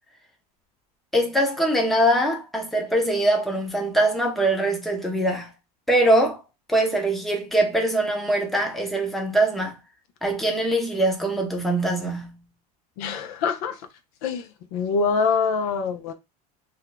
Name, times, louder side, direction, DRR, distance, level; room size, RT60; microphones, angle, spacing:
voice 1, 1.1-5.5 5.9-6.4 6.7-9.8 10.2-12.4, right 1 dB, ahead, 0.7 m, -22 dB
voice 2, 13.0-13.8 14.2-14.5 14.7-16.1, left 5 dB, 65° left, 0.6 m, -24 dB
2.7 x 2.2 x 3.8 m
supercardioid pair, 135°, 20 cm